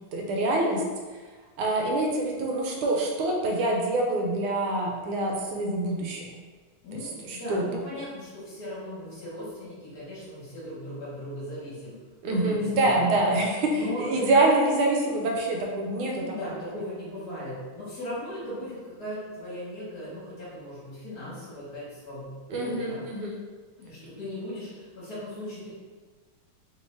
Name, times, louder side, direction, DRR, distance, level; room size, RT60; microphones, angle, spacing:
voice 1, 0.1-0.8 1.6-6.3 7.2-7.6 12.2-16.1 22.5-23.4, right 2 dB, 80° right, 0 dB, 1.4 m, -25 dB
voice 2, 6.8-12.0 12.3-13.2 13.7-14.4 16.0-23.0 23.8-25.7, left 1 dB, 50° left, -8 dB, 1.5 m, -37 dB
3.5 x 2.7 x 3.1 m, 1.4 s
omnidirectional pair, 2.4 m